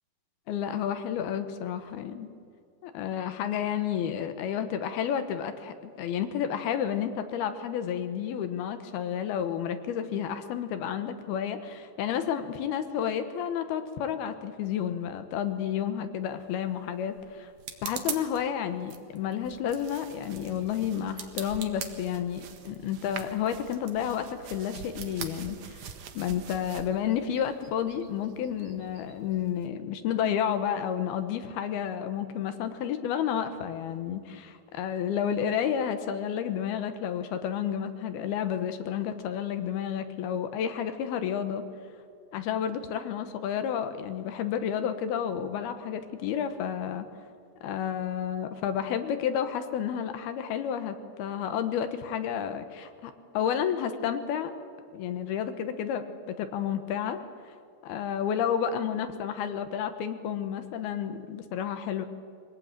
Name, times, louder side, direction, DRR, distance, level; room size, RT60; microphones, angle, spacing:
voice 1, 0.5-2.3 2.8-17.5 17.8-41.6 42.3-47.1 47.6-54.5 54.9-57.2 57.8-62.1, left 9 dB, 75° left, 9 dB, 2.9 m, -31 dB
sound 1, 16.3-26.1, right 7 dB, 55° right, 2.3 m, -43 dB
sound 2, 19.7-29.7, right 7 dB, 85° right, 1.3 m, -47 dB
23.5 x 18.5 x 9.0 m, 2.4 s
omnidirectional pair, 4.8 m